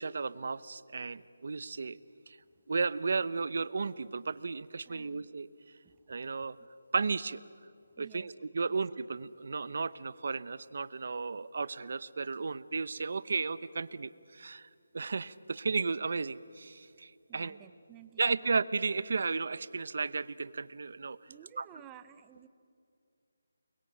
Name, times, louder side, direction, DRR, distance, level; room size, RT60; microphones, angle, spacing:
voice 1, 0.0-2.0 2.3-2.4 2.7-5.5 6.1-6.6 6.9-7.4 8.0-14.7 14.9-17.6 18.2-21.2 21.6-21.7, right 4 dB, 50° right, 17 dB, 0.8 m, -34 dB
voice 2, 4.8-5.3 5.8-6.7 7.9-8.3 8.7-8.8 17.3-18.7 21.3-22.5, right 10 dB, 10° right, 11 dB, 0.7 m, -55 dB
29.0 x 22.0 x 8.9 m, 2.5 s
hypercardioid pair, 175°, 0 cm